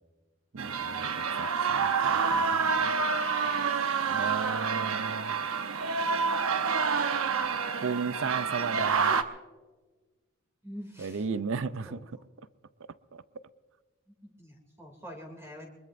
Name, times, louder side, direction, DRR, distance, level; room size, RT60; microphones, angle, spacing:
voice 1, 0.5-2.9 4.1-5.3 7.8-9.2 11.0-12.0 13.1-13.2, right 5 dB, 65° right, 15 dB, 0.5 m, -35 dB
sound 1, 0.6-9.2, right 5 dB, 90° right, 0.8 m, -28 dB
voice 2, 10.6-11.2 11.8-11.9 14.4-15.7, equal, 15° right, 1 dB, 2.7 m, -45 dB
23.5 x 21.5 x 2.6 m, 1.3 s
head